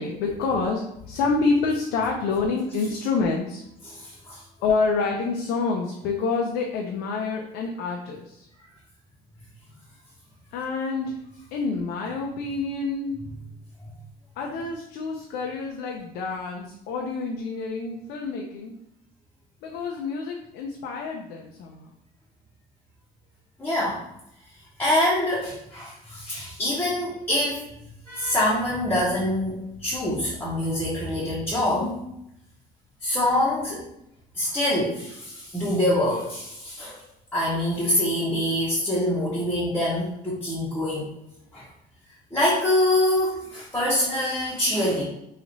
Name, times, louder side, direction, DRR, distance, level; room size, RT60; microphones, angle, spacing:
voice 1, 0.0-4.0 4.6-8.5 10.5-11.2 11.5-13.2 14.4-18.8 19.6-21.9, left 4 dB, 90° left, 1 dB, 0.5 m, -27 dB
voice 2, 3.8-4.4 23.6-24.0 24.8-27.6 28.1-32.0 33.0-33.8 34.3-37.0 37.3-41.1 41.5-41.7 42.3-45.0, left 1 dB, 10° left, -7 dB, 0.8 m, -25 dB
3.0 x 2.4 x 3.8 m, 0.81 s
cardioid pair, 110°, 17 cm